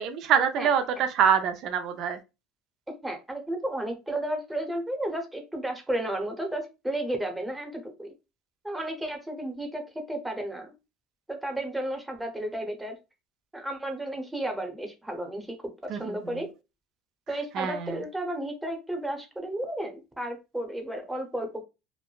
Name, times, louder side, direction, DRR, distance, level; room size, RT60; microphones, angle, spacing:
voice 1, 0.0-2.2 15.9-16.4 17.5-18.0, right 7 dB, 60° right, 0.4 m, -25 dB
voice 2, 3.0-8.1 8.6-9.8 10.1-10.7 11.3-13.0 13.5-15.6 16.0-16.5 17.3-21.6, right 1 dB, 10° right, 0.7 m, -33 dB
3.1 x 2.1 x 2.3 m
supercardioid pair, 105°, 0 cm